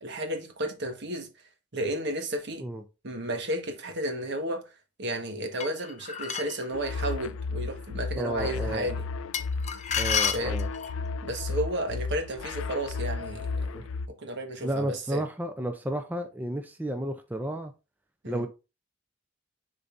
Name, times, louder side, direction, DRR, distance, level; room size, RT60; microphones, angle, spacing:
voice 1, 0.0-1.3 1.7-2.6 3.0-4.6 5.0-9.0 10.3-10.6 11.2-13.7 14.2-15.2 18.2-18.4, right 1 dB, 60° right, 1.4 m, -32 dB
sound 1, 5.6-6.6 9.3-11.0, left 7 dB, 35° left, 0.7 m, -30 dB
sound 2, 6.7-14.1, left 4 dB, 85° left, 0.4 m, -33 dB
voice 2, 8.2-8.9 10.0-10.7 13.7-13.8 14.6-17.7 18.3-18.5, right 1 dB, 10° right, 0.5 m, -32 dB
10.5 x 4.0 x 2.6 m
head